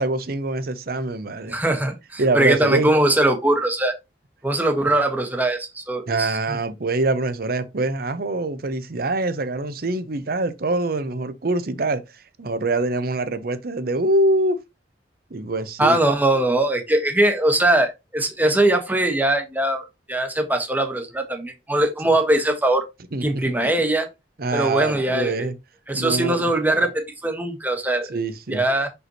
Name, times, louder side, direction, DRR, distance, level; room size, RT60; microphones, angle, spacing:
voice 1, 0.0-1.5 2.2-2.9 6.1-12.0 12.4-14.6 15.3-16.0 23.1-23.2 23.6-23.7 24.4-25.5 25.9-26.5 28.1-28.6, right 2 dB, 55° right, 0.7 m, -24 dB
voice 2, 1.5-3.9 4.4-6.6 15.8-22.8 23.2-24.1 24.5-25.5 25.9-28.2 28.5-28.9, right 1 dB, 10° right, 1.1 m, -21 dB
6.1 x 5.4 x 2.9 m
head